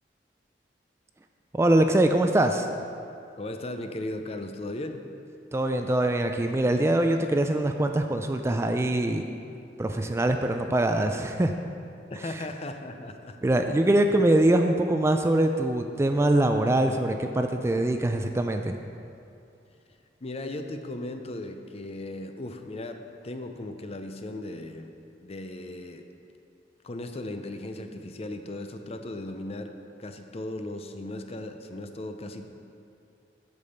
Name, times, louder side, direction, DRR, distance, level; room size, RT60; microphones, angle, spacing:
voice 1, 1.5-2.7 5.5-9.2 9.8-11.5 12.2-12.5 13.4-18.8, right 1 dB, 15° right, 5 dB, 0.3 m, -23 dB
voice 2, 3.4-5.0 12.1-13.4 20.2-24.9 25.2-26.0 26.8-32.5, left 1 dB, 35° left, 6 dB, 0.5 m, -37 dB
8.2 x 6.8 x 5.5 m, 2.5 s
head